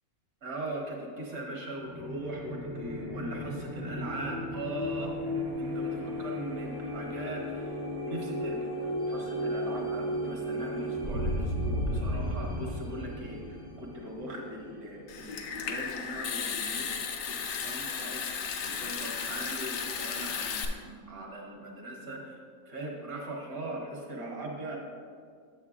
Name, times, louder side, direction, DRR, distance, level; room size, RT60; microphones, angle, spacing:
voice 1, 0.4-5.1 5.6-22.4 22.7-24.8, right 1 dB, 75° right, -1 dB, 1.6 m, -40 dB
sound 1, 1.8-15.3, equal, 50° right, 0.7 m, -34 dB
Water tap faucet / Sink (filling or washing) / Trickle dribble, 15.1-20.7, left 6 dB, 70° left, 1.0 m, -35 dB
8.8 x 7.2 x 2.4 m, 2.2 s
omnidirectional pair, 1.5 m